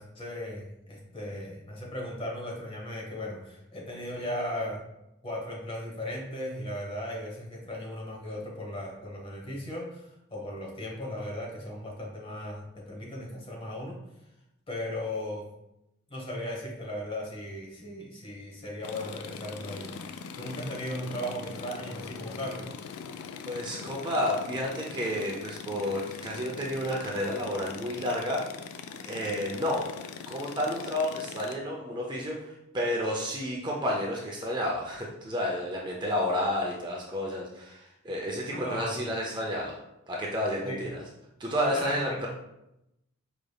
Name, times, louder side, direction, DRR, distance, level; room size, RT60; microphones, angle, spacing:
voice 1, 0.0-4.8 5.2-14.0 14.7-15.5 16.1-22.7 38.5-39.1 40.6-40.8 41.7-42.3, left 1 dB, 25° left, -2 dB, 1.0 m, -37 dB
sound 1, 18.8-31.6, left 6 dB, 70° left, 0.3 m, -42 dB
voice 2, 23.5-28.4 29.0-29.8 30.3-39.7 40.1-41.0 41.4-42.3, equal, 20° right, -2 dB, 0.5 m, -31 dB
5.0 x 3.3 x 2.3 m, 0.86 s
head